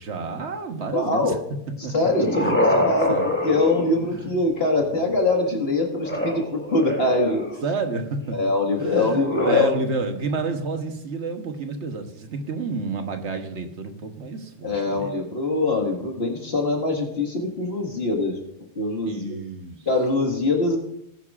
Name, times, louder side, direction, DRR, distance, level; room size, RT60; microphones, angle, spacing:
voice 1, 0.0-1.4 1.8-1.9 2.4-2.8 3.1-3.3 4.1-4.3 4.8-4.9 7.6-8.4 8.8-15.1 19.1-19.8, right 4 dB, 85° right, 6 dB, 1.4 m, -30 dB
voice 2, 0.9-1.4 1.9-7.4 8.3-9.7 14.6-18.4 18.8-19.4 19.9-20.8, left 2 dB, 65° left, 2 dB, 2.1 m, -23 dB
sound 1, 1.8-4.5 6.0-7.7 9.1-9.6, equal, 10° left, 1.7 m, -26 dB
19.0 x 9.5 x 2.5 m, 0.79 s
omnidirectional pair, 1.1 m